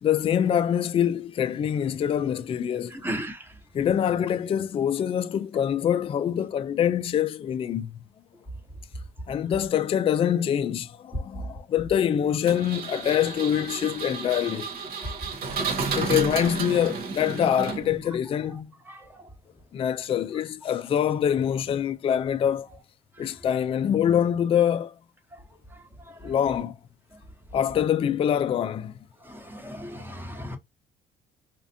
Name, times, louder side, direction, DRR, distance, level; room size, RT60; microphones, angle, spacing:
voice 1, 0.0-3.0 3.7-8.0 9.3-14.7 15.8-18.7 19.7-22.7 23.2-24.9 26.2-26.7 27.5-28.9, left 9 dB, 35° left, 0.3 m, -25 dB
voice 2, 3.0-3.4 15.0-15.1 18.9-19.0 29.5-30.6, equal, 10° right, 1.1 m, -34 dB
Engine, 12.5-18.1, right 4 dB, 60° right, 0.9 m, -32 dB
4.3 x 2.4 x 2.6 m
cardioid pair, 110°, 17 cm